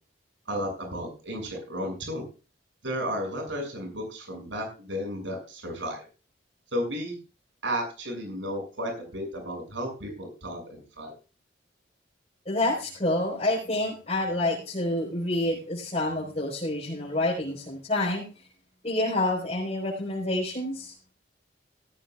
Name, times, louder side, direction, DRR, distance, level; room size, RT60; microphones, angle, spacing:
voice 1, 0.5-2.2 2.8-6.1 6.7-7.1 7.6-11.1, equal, 80° right, 3 dB, 6.7 m, -33 dB
voice 2, 12.5-18.2 18.8-20.9, left 1 dB, 35° left, -5 dB, 4.5 m, -28 dB
16.5 x 15.0 x 2.4 m, 0.33 s
head